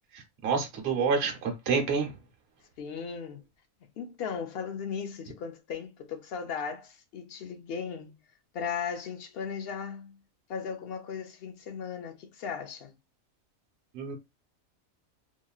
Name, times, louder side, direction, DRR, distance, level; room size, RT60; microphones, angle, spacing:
voice 1, 0.1-2.1 13.9-14.2, right 5 dB, 55° right, 0.9 m, -28 dB
voice 2, 2.8-3.4 4.0-8.2 8.5-10.2 10.5-13.0, left 6 dB, 60° left, 0.6 m, -37 dB
2.9 x 2.5 x 2.3 m
omnidirectional pair, 1.5 m